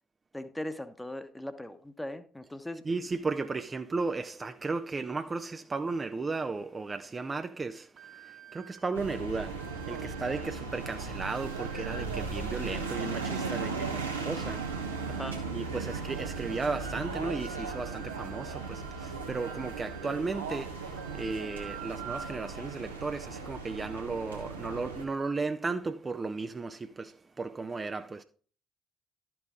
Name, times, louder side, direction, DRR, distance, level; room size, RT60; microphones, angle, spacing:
voice 1, 0.3-2.8 15.1-15.4, left 1 dB, 10° left, 1.0 m, -39 dB
voice 2, 2.8-15.1 15.5-28.2, right 3 dB, 25° right, 0.5 m, -35 dB
sound 1, 8.0-22.6, right 5 dB, 50° right, 2.2 m, -52 dB
sound 2, 8.9-25.1, right 4 dB, 85° right, 1.1 m, -37 dB
11.5 x 6.0 x 3.7 m
figure-of-eight pair, 45°, 0 cm